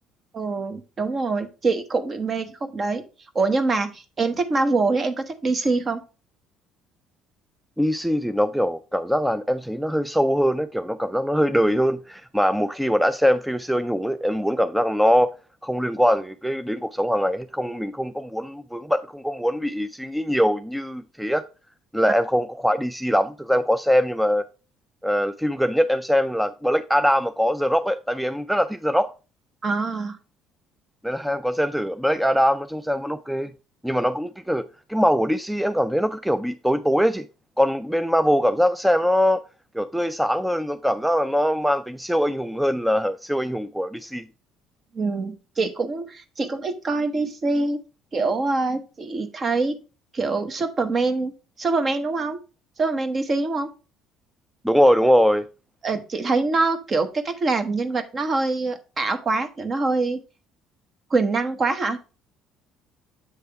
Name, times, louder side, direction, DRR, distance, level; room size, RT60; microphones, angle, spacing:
voice 1, 0.3-3.0 3.3-6.0 29.6-30.2 44.9-47.8 48.1-49.8 50.1-51.3 51.6-52.4 52.8-53.7 55.8-60.2 61.1-62.0, right 3 dB, 35° right, 1.0 m, -24 dB
voice 2, 7.8-15.3 15.6-21.4 21.9-24.4 25.0-29.1 31.0-33.5 33.8-34.6 34.9-37.2 37.6-39.4 39.7-44.2 54.6-55.4, equal, 5° right, 0.3 m, -22 dB
7.7 x 3.3 x 4.5 m
supercardioid pair, 85°, 0 cm